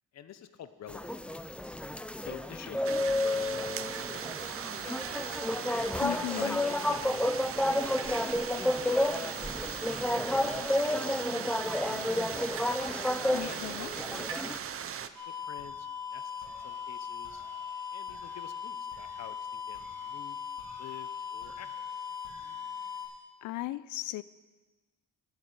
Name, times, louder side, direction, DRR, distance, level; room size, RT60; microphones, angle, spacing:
voice 1, 0.1-1.4 2.2-4.9 6.1-8.7 9.2-11.3 11.6-12.6 13.4-17.4 17.9-20.4 20.8-21.7, left 10 dB, 60° left, 11 dB, 0.8 m, -49 dB
sound 1, 0.9-14.6, left 1 dB, 5° left, 0.5 m, -31 dB
sound 2, 2.8-15.1, right 8 dB, 45° right, 0.7 m, -39 dB
voice 2, 6.0-6.6 13.3-13.9 23.4-24.2, left 16 dB, 85° left, 18 dB, 0.5 m, -36 dB
sound 3, 15.1-23.0, left 7 dB, 75° right, 4.1 m, -40 dB
9.1 x 8.0 x 9.0 m, 1.2 s
cardioid pair, 90°, 30 cm